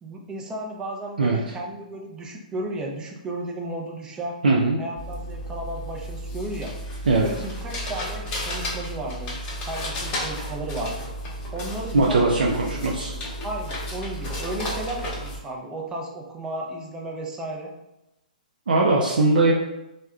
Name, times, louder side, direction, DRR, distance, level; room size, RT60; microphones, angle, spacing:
voice 1, 0.0-4.4 4.8-6.7 7.2-9.3 9.6-11.1 11.5-17.7, right 1 dB, 15° right, 0 dB, 0.4 m, -34 dB
voice 2, 1.2-1.5 4.4-4.8 7.1-7.3 11.9-13.1 18.7-19.5, right 3 dB, 75° right, -1 dB, 0.4 m, -20 dB
sound 1, 5.0-15.4, equal, 25° left, 0.8 m, -33 dB
3.4 x 2.1 x 2.3 m, 0.94 s
hypercardioid pair, 130°, 5 cm